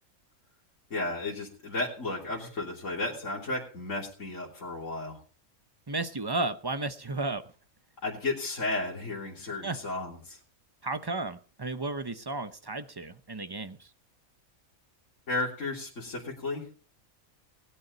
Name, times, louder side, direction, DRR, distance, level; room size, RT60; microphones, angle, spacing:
voice 1, 0.9-5.2 8.0-10.4 15.3-16.7, left 2 dB, 65° left, -5 dB, 3.6 m, -33 dB
voice 2, 5.9-7.4 9.6-9.8 10.8-13.9, right 2 dB, 25° right, 11 dB, 0.6 m, -33 dB
20.0 x 9.8 x 4.0 m, 0.41 s
omnidirectional pair, 1.4 m